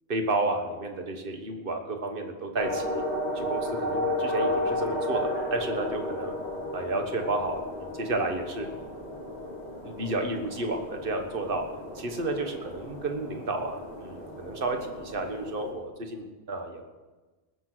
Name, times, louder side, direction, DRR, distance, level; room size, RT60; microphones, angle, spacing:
voice 1, 0.1-3.0 3.3-6.3 6.7-8.7 9.8-11.7 11.9-16.8, right 2 dB, 55° right, 4 dB, 1.6 m, -31 dB
sound 1, 2.6-15.7, left 1 dB, 40° right, 2.8 m, -33 dB
19.5 x 7.2 x 6.2 m, 1.2 s
omnidirectional pair, 1.1 m